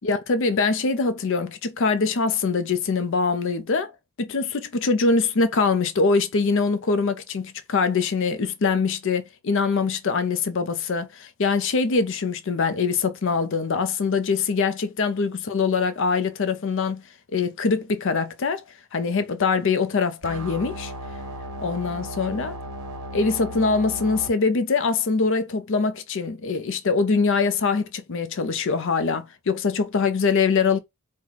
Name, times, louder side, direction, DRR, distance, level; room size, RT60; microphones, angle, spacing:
voice 1, 0.0-3.9 4.2-17.0 17.3-18.6 18.9-20.9 21.6-22.6 23.1-30.8, left 4 dB, 60° left, 0.5 m, -23 dB
sound 1, 20.2-24.3, equal, 80° right, 1.0 m, -35 dB
4.6 x 2.2 x 3.9 m
head